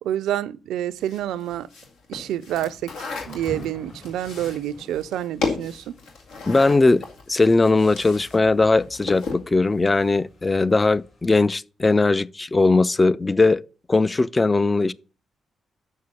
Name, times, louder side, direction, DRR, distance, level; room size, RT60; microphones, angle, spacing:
voice 1, 0.0-1.7 2.1-5.9, right 12 dB, 80° right, 0.4 m, -28 dB
sound 1, 1.0-8.4 8.6-9.5, left 3 dB, 80° left, 2.0 m, -34 dB
Thunder / Rain, 2.5-11.5, left 1 dB, 50° left, 5.0 m, -47 dB
voice 2, 6.5-13.6 13.9-14.9, left 3 dB, 25° left, 0.4 m, -19 dB
6.5 x 5.8 x 7.0 m
supercardioid pair, 50°, 0 cm